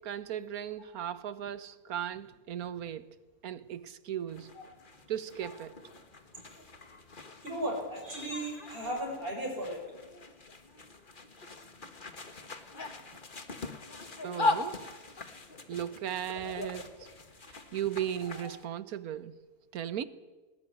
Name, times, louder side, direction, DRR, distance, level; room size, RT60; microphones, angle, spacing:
voice 1, 0.0-3.1 3.4-4.5 5.1-5.8 14.2-14.9 15.7-17.1 17.5-19.4 19.7-20.0, right 10 dB, 80° right, 1.5 m, -37 dB
sound 1, 4.3-18.6, left 3 dB, 35° left, 1.7 m, -40 dB
voice 2, 7.4-9.8 18.2-18.3, right 1 dB, 40° right, 7.1 m, -36 dB
19.5 x 19.0 x 9.9 m
omnidirectional pair, 1.5 m